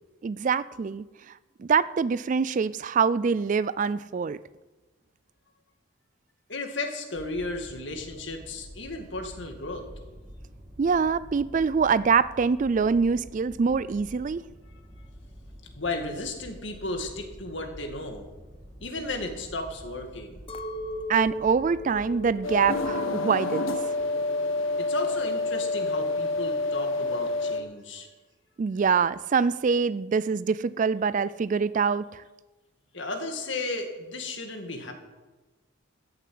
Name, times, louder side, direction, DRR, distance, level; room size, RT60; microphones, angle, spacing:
voice 1, 0.2-1.0 1.6-4.4 10.8-14.4 21.1-23.8 28.6-32.2, right 5 dB, 40° right, 18 dB, 0.3 m, -24 dB
voice 2, 6.5-9.9 15.8-18.3 18.8-20.4 24.8-28.1 32.9-34.9, left 2 dB, 60° left, 4 dB, 2.1 m, -34 dB
sound 1, 7.1-22.7, equal, 15° right, 3.0 m, -47 dB
Chink clink, 20.5-24.8 25.1-25.9, left 1 dB, 25° left, 0.7 m, -39 dB
sound 2, 22.4-27.6, left 3 dB, 80° left, 1.5 m, -28 dB
14.0 x 7.2 x 8.6 m, 1.2 s
head